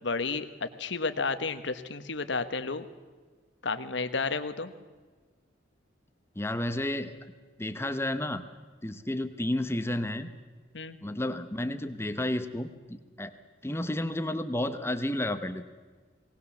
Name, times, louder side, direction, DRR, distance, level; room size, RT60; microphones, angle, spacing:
voice 1, 0.0-2.8 3.6-4.7 10.7-11.0, left 4 dB, 65° left, 10 dB, 1.2 m, -32 dB
voice 2, 6.4-7.2 7.6-8.4 8.8-10.3 11.0-13.3 13.6-15.6, left 1 dB, 15° left, 9 dB, 0.9 m, -31 dB
20.0 x 19.0 x 7.2 m, 1.4 s
head